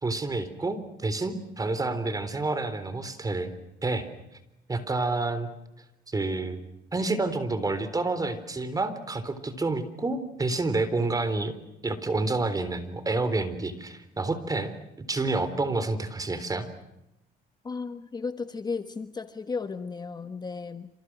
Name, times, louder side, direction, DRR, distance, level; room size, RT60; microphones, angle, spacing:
voice 1, 0.0-3.5 3.8-4.1 4.7-5.5 6.1-6.6 6.9-11.6 11.8-14.7 15.1-16.7, right 3 dB, 20° right, 12 dB, 3.7 m, -29 dB
voice 2, 17.6-20.9, left 4 dB, 25° left, 10 dB, 1.2 m, -34 dB
28.0 x 28.0 x 6.2 m, 0.89 s
cardioid pair, 110°, 17 cm